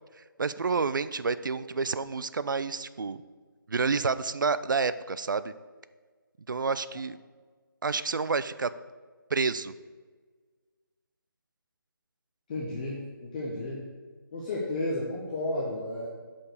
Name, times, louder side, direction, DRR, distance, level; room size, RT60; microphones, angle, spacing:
voice 1, 0.4-3.2 3.7-5.5 6.5-7.2 7.8-8.7 9.3-9.7, right 4 dB, 60° right, 14 dB, 0.4 m, -29 dB
voice 2, 12.5-13.9 14.3-16.1, left 2 dB, 20° left, -4 dB, 1.0 m, -32 dB
8.4 x 5.2 x 6.5 m, 1.5 s
figure-of-eight pair, 160°, 12 cm